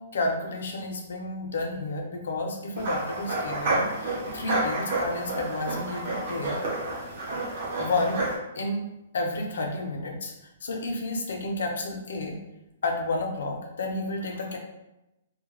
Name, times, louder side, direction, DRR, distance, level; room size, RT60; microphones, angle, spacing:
voice 1, 0.0-6.6 7.8-8.2 8.5-8.9 9.1-10.3 10.6-12.4 12.8-14.6, left 2 dB, 70° left, 2 dB, 0.5 m, -31 dB
sound 1, 2.8-8.3, right 2 dB, 35° right, 0.6 m, -30 dB
2.2 x 2.1 x 2.9 m, 0.92 s
hypercardioid pair, 180°, 0 cm